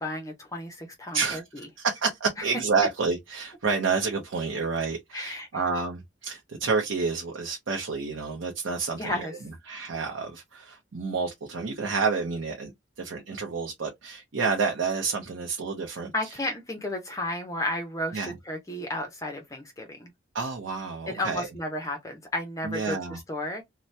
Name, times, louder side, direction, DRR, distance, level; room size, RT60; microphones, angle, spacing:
voice 1, 0.0-1.7 2.4-2.5 5.1-5.6 9.0-9.4 16.1-20.1 21.1-23.6, left 1 dB, 15° left, 0.5 m, -33 dB
voice 2, 1.1-9.3 9.7-16.1 18.1-18.3 20.3-21.5 22.6-23.2, right 4 dB, 80° right, 0.6 m, -29 dB
2.7 x 2.0 x 3.1 m
head